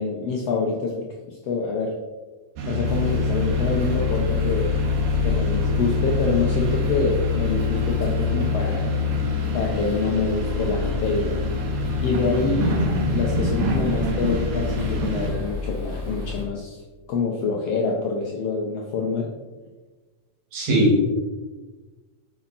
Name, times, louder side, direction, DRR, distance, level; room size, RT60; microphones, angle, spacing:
voice 1, 0.0-2.0 2.6-4.7 5.2-8.9 9.5-11.3 12.0-12.8 13.1-16.8 17.1-19.3, left 4 dB, 70° left, -1 dB, 1.5 m, -26 dB
sound 1, 2.6-15.3, left 3 dB, 85° right, 2.7 m, -25 dB
sound 2, 2.8-16.5, left 3 dB, 40° right, 2.3 m, -32 dB
voice 2, 20.5-21.2, equal, 60° right, -1 dB, 2.9 m, -19 dB
8.8 x 5.8 x 4.0 m, 1.3 s
omnidirectional pair, 3.7 m